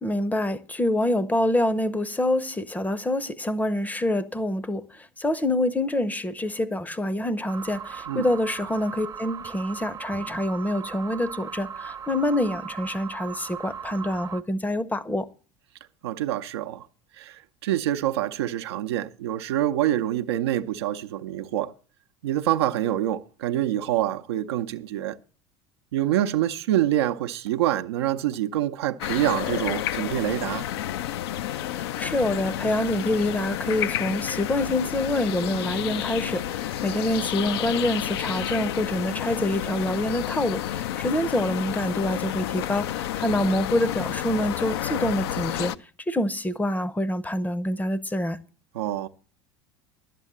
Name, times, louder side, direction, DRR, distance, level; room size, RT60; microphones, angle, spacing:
voice 1, 0.0-15.3 31.7-45.7 46.1-48.4, left 1 dB, 10° left, 0.7 m, -26 dB
sound 1, 7.5-14.4, right 7 dB, 30° right, 0.8 m, -38 dB
voice 2, 16.0-16.9 17.2-21.7 22.2-25.2 25.9-30.7 48.7-49.1, right 13 dB, 70° right, 0.7 m, -26 dB
sound 2, 29.0-45.8, left 12 dB, 65° left, 0.5 m, -30 dB
11.5 x 7.6 x 7.3 m
figure-of-eight pair, 70°, 14 cm